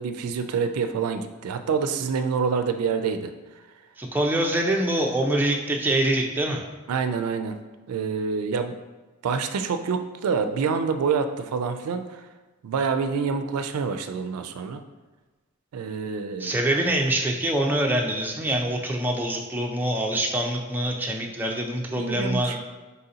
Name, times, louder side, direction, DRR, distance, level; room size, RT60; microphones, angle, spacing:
voice 1, 0.0-3.3 6.9-7.6 7.9-8.8 9.2-12.2 12.6-14.8 15.7-16.6 22.0-22.6, right 5 dB, 90° right, 8 dB, 0.3 m, -27 dB
voice 2, 4.0-6.6 16.4-22.6, right 1 dB, 10° right, 0 dB, 0.3 m, -25 dB
4.0 x 2.7 x 3.8 m, 1.2 s
head